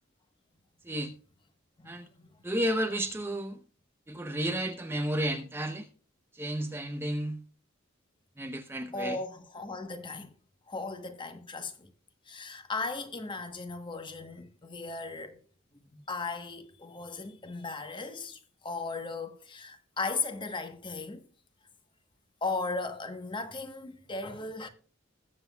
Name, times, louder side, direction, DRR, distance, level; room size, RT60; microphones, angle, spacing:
voice 1, 2.4-3.6 4.1-5.9 6.3-7.4 8.4-9.2, right 1 dB, 10° right, 0.7 m, -32 dB
voice 2, 8.9-10.3 10.7-11.9 12.3-15.4 15.7-21.3 22.4-24.7, left 3 dB, 25° left, 1.1 m, -37 dB
20.0 x 7.5 x 2.3 m
head